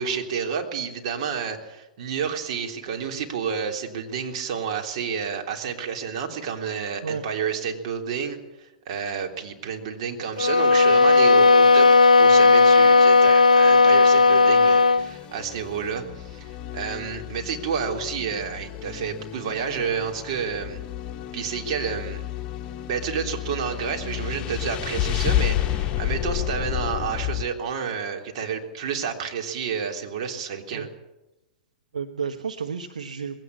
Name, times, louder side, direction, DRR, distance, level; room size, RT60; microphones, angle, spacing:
voice 1, 0.0-20.8 21.3-22.2 22.9-30.9, right 7 dB, 55° right, 3 dB, 3.5 m, -30 dB
sound 1, 10.4-15.1, left 3 dB, 85° left, 0.8 m, -15 dB
sound 2, 15.0-27.4, left 12 dB, 30° left, 1.3 m, -31 dB
voice 2, 31.9-33.4, right 6 dB, 75° right, 7 dB, 1.2 m, -32 dB
21.0 x 17.0 x 8.5 m, 0.98 s
figure-of-eight pair, 105°, 4 cm